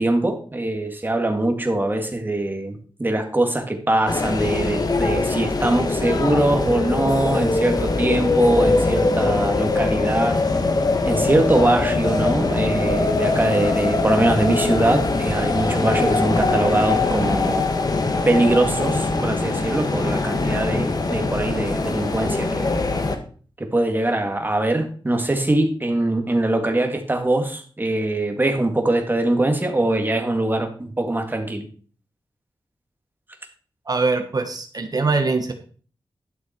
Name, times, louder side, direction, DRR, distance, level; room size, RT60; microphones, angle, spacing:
voice 1, 0.0-10.4 11.0-17.6 18.2-22.8 23.6-31.6, right 2 dB, 25° right, 5 dB, 2.1 m, -22 dB
sound 1, 4.1-23.2, left 3 dB, 50° left, 1.5 m, -22 dB
voice 2, 33.9-35.5, right 3 dB, 50° right, 7 dB, 1.2 m, -22 dB
12.0 x 6.2 x 4.5 m, 0.43 s
wide cardioid pair, 75°, 9 cm